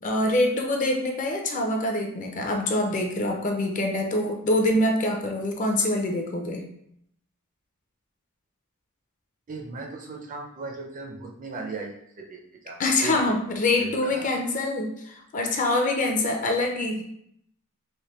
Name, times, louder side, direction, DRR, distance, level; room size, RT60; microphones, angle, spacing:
voice 1, 0.0-6.6 12.8-17.0, left 1 dB, 35° left, 2 dB, 0.5 m, -25 dB
voice 2, 9.5-13.2 13.8-14.3, right 4 dB, 35° right, 1 dB, 0.4 m, -37 dB
3.3 x 2.6 x 2.9 m, 0.72 s
head